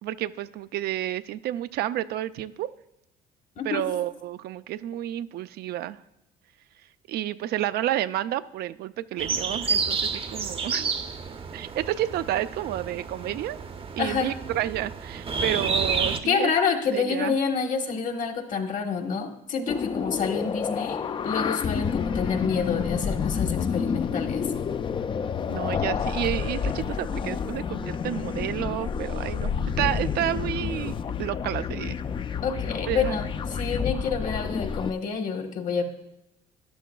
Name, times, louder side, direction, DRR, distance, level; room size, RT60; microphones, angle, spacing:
voice 1, 0.0-2.7 3.6-6.0 7.1-10.9 11.5-13.6 14.0-16.5 16.9-17.4 25.5-32.0 32.9-33.2, right 13 dB, 70° right, 13 dB, 0.4 m, -30 dB
sound 1, 9.2-16.2, right 5 dB, 35° right, 0.7 m, -30 dB
voice 2, 14.0-14.3 16.3-24.4 32.4-35.8, left 6 dB, 50° left, 5 dB, 1.3 m, -28 dB
sound 2, 19.7-34.9, left 6 dB, 30° left, 0.4 m, -29 dB
13.0 x 11.0 x 2.3 m, 0.90 s
cardioid pair, 110°, 17 cm